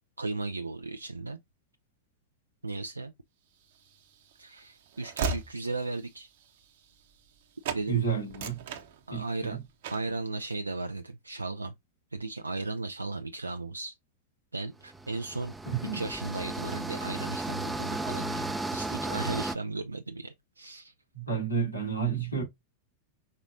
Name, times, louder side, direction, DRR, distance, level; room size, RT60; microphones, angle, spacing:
voice 1, 0.2-1.4 2.6-3.1 4.4-6.3 7.7-8.0 9.1-9.6 9.9-11.7 12.1-14.0 14.5-15.5 15.9-20.9, right 3 dB, 80° right, 0.3 m, -36 dB
Train / Slam, 3.7-7.4 7.6-7.9 8.2-9.4 9.8-10.2, right 5 dB, 55° right, 0.8 m, -37 dB
voice 2, 7.9-8.6 9.1-9.6 15.7-16.0 21.1-22.4, right 6 dB, 85° left, 2.3 m, -31 dB
sound 1, 14.9-19.6, right 2 dB, 5° right, 0.5 m, -34 dB
5.3 x 3.9 x 2.5 m
figure-of-eight pair, 90°, 0 cm